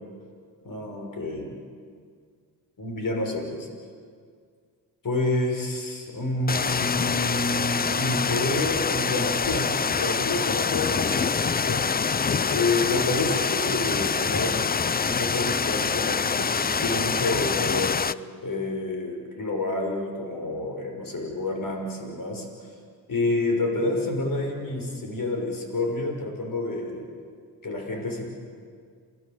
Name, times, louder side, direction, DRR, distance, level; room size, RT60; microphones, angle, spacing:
voice 1, 0.6-1.6 2.8-3.7 5.0-11.8 12.4-14.7 15.0-18.0 18.4-22.5 23.1-27.0 27.6-28.3, left 2 dB, 45° left, 2 dB, 6.3 m, -29 dB
sound 1, 6.5-18.1, left 5 dB, 20° left, 0.6 m, -25 dB
27.5 x 19.5 x 8.3 m, 2.1 s
supercardioid pair, 60°, 44 cm